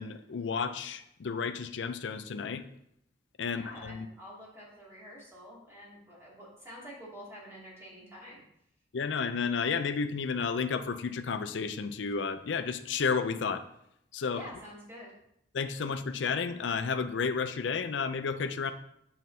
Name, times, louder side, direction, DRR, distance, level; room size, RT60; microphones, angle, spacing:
voice 1, 0.0-2.6 3.4-4.1 8.9-13.6 14.1-14.4 15.5-18.7, left 5 dB, 80° left, 10 dB, 0.5 m, -32 dB
voice 2, 3.5-8.4 14.3-15.1, equal, 15° right, -6 dB, 2.4 m, -48 dB
7.3 x 5.8 x 2.7 m, 0.75 s
head